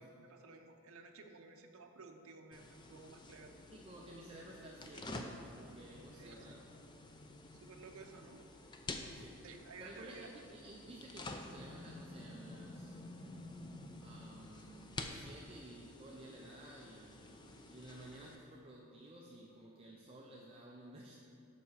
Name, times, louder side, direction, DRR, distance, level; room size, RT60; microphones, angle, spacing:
voice 1, 0.0-3.5 6.1-6.6 7.5-8.4 9.4-10.3 10.8-10.9, right 4 dB, 70° right, 4 dB, 0.7 m, -55 dB
sound 1, 2.5-18.4, left 2 dB, 20° left, 0.4 m, -50 dB
voice 2, 3.7-6.6 9.1-9.4 9.8-13.0 14.0-21.2, right 1 dB, 25° right, -3 dB, 0.6 m, -54 dB
7.1 x 5.7 x 6.5 m, 2.6 s
head